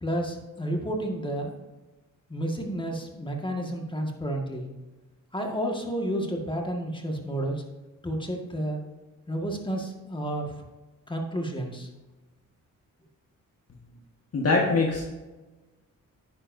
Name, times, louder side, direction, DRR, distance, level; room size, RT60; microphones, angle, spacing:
voice 1, 0.0-1.6 2.3-4.7 5.3-7.6 8.0-8.8 9.3-10.5 11.1-11.9, right 1 dB, 15° left, 2 dB, 1.7 m, -31 dB
voice 2, 14.3-15.0, left 3 dB, 50° left, -2 dB, 1.5 m, -22 dB
10.0 x 9.8 x 2.7 m, 1.2 s
cardioid pair, 95°, 32 cm